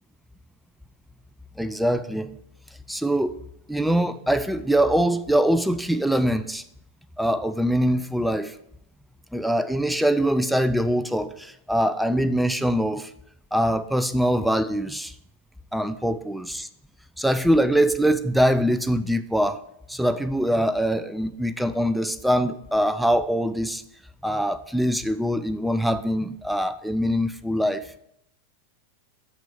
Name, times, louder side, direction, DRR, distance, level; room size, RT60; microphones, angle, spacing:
voice 1, 1.6-2.3 2.9-3.4 3.7-6.6 7.2-8.6 9.3-13.1 13.5-15.1 15.7-16.7 17.2-19.6 19.9-23.8 24.2-28.0, equal, ahead, 0.5 m, -23 dB
6.7 x 5.9 x 7.3 m
figure-of-eight pair, 90°, 0 cm